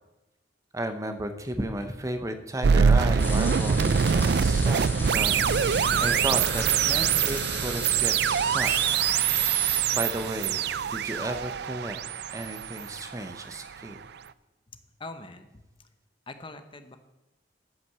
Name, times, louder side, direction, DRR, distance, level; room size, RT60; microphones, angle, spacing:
voice 1, 0.7-9.0 9.9-12.0 12.3-14.0, right 1 dB, 20° right, 7 dB, 0.7 m, -34 dB
sound 1, 2.6-13.7, right 7 dB, 65° right, 0.4 m, -24 dB
sound 2, 3.2-9.8, left 3 dB, 15° left, 2.2 m, -37 dB
Shatter, 8.7-9.7, right 4 dB, 40° right, 3.6 m, -39 dB
voice 2, 14.7-15.9 16.3-17.0, left 2 dB, 30° left, 8 dB, 0.8 m, -44 dB
12.5 x 6.0 x 6.7 m, 1.1 s
head